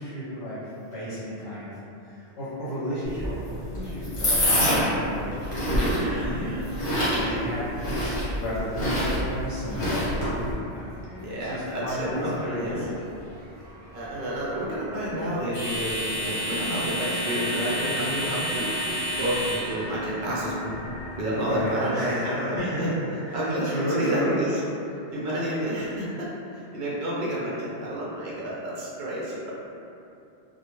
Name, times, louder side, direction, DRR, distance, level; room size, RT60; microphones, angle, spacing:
voice 1, 0.0-5.6 6.3-6.5 7.0-10.4 10.7-12.9 21.3-22.9 23.2-24.3, equal, 70° left, -12 dB, 0.9 m, -33 dB
sound 1, 3.0-10.5, equal, 50° left, 1.1 m, -26 dB
voice 2, 5.8-6.7 7.0-7.4 11.2-12.9 13.9-18.7 19.2-20.8 21.2-22.9 23.3-24.5 25.1-29.5, equal, 55° right, -6 dB, 0.6 m, -30 dB
sound 2, 10.5-21.7, equal, 35° left, 0.7 m, -34 dB
sound 3, 16.1-25.1, left 1 dB, ahead, 1.0 m, -38 dB
2.2 x 2.1 x 2.9 m, 2.6 s
omnidirectional pair, 1.2 m